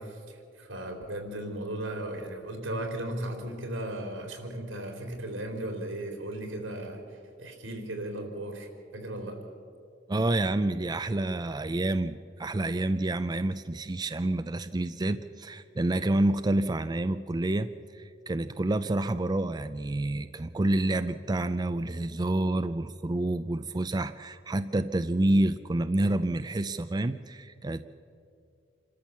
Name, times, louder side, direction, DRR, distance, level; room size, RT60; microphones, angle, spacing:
voice 1, 0.0-7.0 7.4-9.4, right 1 dB, 85° right, 3 dB, 3.9 m, -36 dB
voice 2, 10.1-27.8, right 1 dB, 20° right, 10 dB, 0.4 m, -28 dB
27.5 x 13.5 x 7.2 m, 2.3 s
head